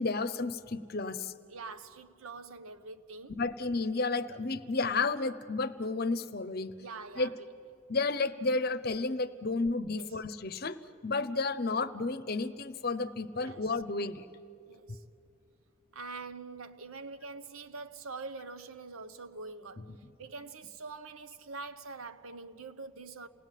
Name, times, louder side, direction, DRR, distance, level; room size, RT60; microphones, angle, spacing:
voice 1, 0.0-1.3 3.3-6.7 7.2-7.4 7.9-14.3 19.8-20.0, left 3 dB, 45° left, 0.8 m, -32 dB
voice 2, 1.5-3.4 6.8-7.5 9.9-10.1 13.3-13.6 14.7-15.0 15.9-23.3, right 3 dB, 80° right, 1.1 m, -44 dB
28.0 x 18.5 x 9.1 m
head